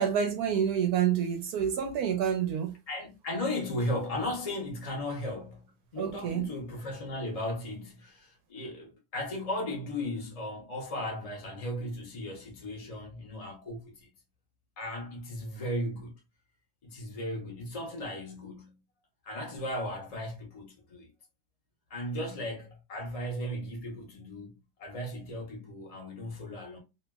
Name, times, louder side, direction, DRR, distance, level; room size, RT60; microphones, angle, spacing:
voice 1, 0.0-2.7 6.0-6.5, right 8 dB, 70° right, 0.9 m, -28 dB
voice 2, 2.9-14.1 14.8-16.1 16.8-18.8 19.2-21.1 21.9-26.8, left 1 dB, 50° left, 0.4 m, -36 dB
3.0 x 2.5 x 2.2 m
omnidirectional pair, 2.0 m